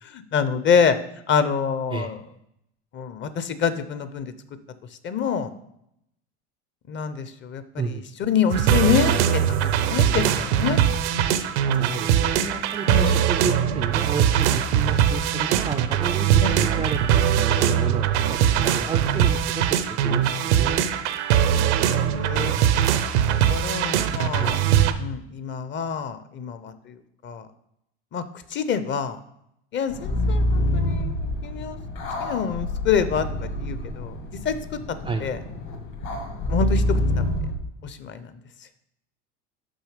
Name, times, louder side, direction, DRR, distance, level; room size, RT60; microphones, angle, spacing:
voice 1, 0.0-1.0 1.3-2.2 2.9-4.3 5.0-5.5 6.9-10.8 12.8-13.3 16.4-16.7 21.3-22.6 23.5-24.7 25.0-27.0 27.2-27.5 28.1-28.2 28.5-29.2 29.7-31.8 32.2-34.2 34.4-34.6 35.2-35.4 36.5-37.3 37.8-38.3, left 6 dB, 35° left, 12 dB, 0.6 m, -26 dB
sound 1, 8.5-24.9, right 9 dB, 80° right, 0.7 m, -21 dB
voice 2, 11.7-16.3 16.6-19.8 20.0-20.8 24.4-24.8 35.0-35.2, right 5 dB, 15° right, 7 dB, 0.3 m, -31 dB
sound 2, 29.9-37.6, left 1 dB, 65° left, 2.0 m, -26 dB
6.3 x 5.8 x 5.0 m, 0.78 s
supercardioid pair, 110°, 34 cm